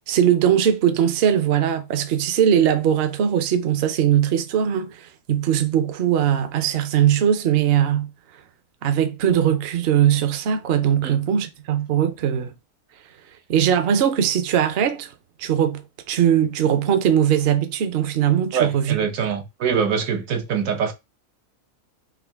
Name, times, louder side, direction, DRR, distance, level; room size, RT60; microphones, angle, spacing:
voice 1, 0.1-8.1 8.8-12.5 13.5-15.1 15.4-15.8 16.1-19.0, right 9 dB, 60° right, 0.7 m, -20 dB
voice 2, 18.5-20.9, right 7 dB, 85° right, 1.2 m, -23 dB
3.7 x 2.7 x 3.4 m
omnidirectional pair, 1.4 m